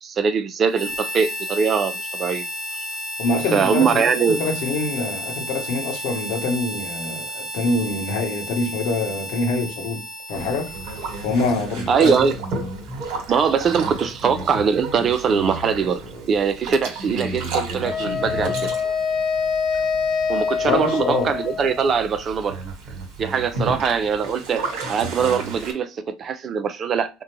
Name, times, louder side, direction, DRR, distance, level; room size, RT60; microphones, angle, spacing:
voice 1, 0.0-1.9 2.2-2.4 3.5-4.4 11.9-12.3 13.3-16.0 16.3-18.7 20.3-22.6 23.2-27.1, right 6 dB, 40° right, 0.5 m, -22 dB
Harmonica, 0.7-11.8, left 1 dB, ahead, 1.3 m, -32 dB
voice 2, 3.2-10.0 10.3-10.7 11.2-12.2 20.6-21.3 23.5-23.8, left 3 dB, 70° left, 1.0 m, -25 dB
Boat Water vehicle, 10.3-25.7, right 2 dB, 65° right, 1.3 m, -33 dB
Wind instrument woodwind instrument, 17.8-22.0, left 6 dB, 40° left, 0.5 m, -25 dB
3.5 x 2.3 x 2.8 m
hypercardioid pair, 85°, 0 cm